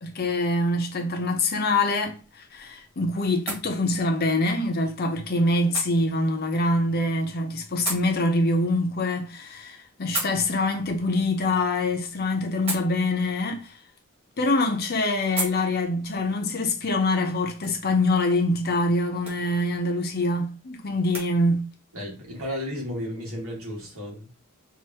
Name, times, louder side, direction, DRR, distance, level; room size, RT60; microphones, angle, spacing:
voice 1, 0.0-13.8 14.4-21.7, left 2 dB, 45° left, 0.8 m, -25 dB
sound 1, 1.8-21.3, right 2 dB, 25° right, 1.6 m, -40 dB
voice 2, 21.9-24.5, equal, 70° right, 1.9 m, -34 dB
4.8 x 2.5 x 2.9 m
head